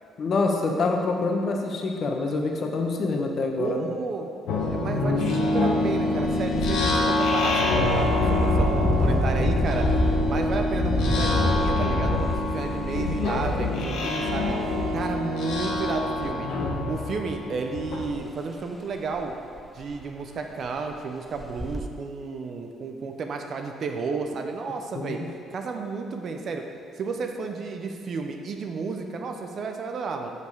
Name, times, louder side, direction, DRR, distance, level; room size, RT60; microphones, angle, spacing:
voice 1, 0.2-3.9 24.9-25.2, left 3 dB, 55° left, 2 dB, 0.9 m, -26 dB
voice 2, 3.6-4.3 4.7-8.1 8.4-9.9 10.3-14.6 14.9-16.5 16.9-19.3 19.7-25.2 25.5-26.7 27.0-30.3, right 4 dB, 55° right, 4 dB, 0.7 m, -32 dB
sound 1, 4.5-18.1, left 2 dB, 75° left, 1.1 m, -25 dB
Engine, 6.3-6.5 7.0-7.1 8.4-14.1 15.0-15.1 15.6-16.3 18.1-18.2 18.6-18.7 19.2-19.3 19.6-20.1 20.6-20.8 21.4-21.8, equal, 5° left, 0.6 m, -28 dB
6.7 x 5.4 x 4.7 m, 2.4 s
supercardioid pair, 75°, 0 cm